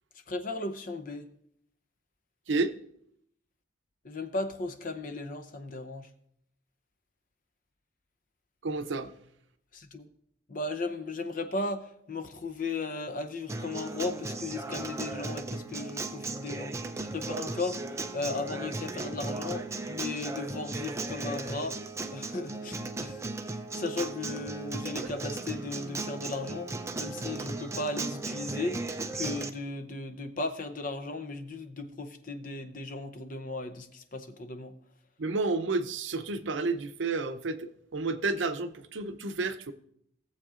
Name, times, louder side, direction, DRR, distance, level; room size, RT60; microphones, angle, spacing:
voice 1, 0.3-1.3 4.0-6.1 9.7-10.1 10.5-16.7 17.1-17.9 18.1-21.8 22.1-23.2 23.4-28.8 29.1-34.7, left 3 dB, 45° left, 0.6 m, -36 dB
voice 2, 8.6-9.1 25.0-25.1 35.2-39.7, right 3 dB, 75° right, 0.6 m, -31 dB
Acoustic guitar, 13.5-29.5, right 3 dB, 15° right, 0.4 m, -36 dB
17.0 x 7.5 x 2.5 m
head